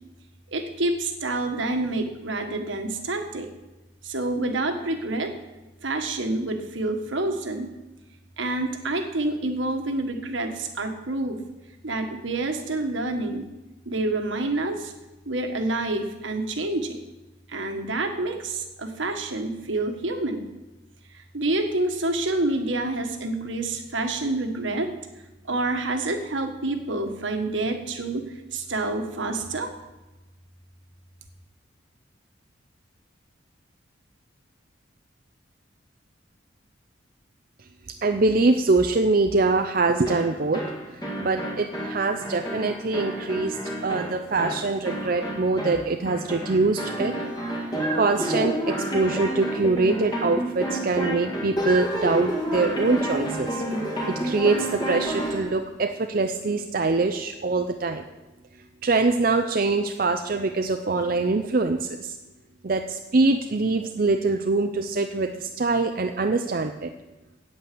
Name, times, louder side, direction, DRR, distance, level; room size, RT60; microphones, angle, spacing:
voice 1, 0.5-3.5 4.0-5.4 5.8-7.7 8.4-11.4 11.8-13.5 13.8-14.9 15.2-17.0 17.5-20.4 21.1-24.9 25.5-29.7, right 2 dB, 70° right, 5 dB, 1.5 m, -28 dB
voice 2, 38.0-47.1 47.5-47.6 47.9-53.6 54.1-58.0 58.8-62.2 62.6-66.9, right 3 dB, 45° right, 6 dB, 0.5 m, -24 dB
sound 1, 40.1-55.5, right 1 dB, 20° left, 1.8 m, -30 dB
8.8 x 8.6 x 7.6 m, 1.1 s
head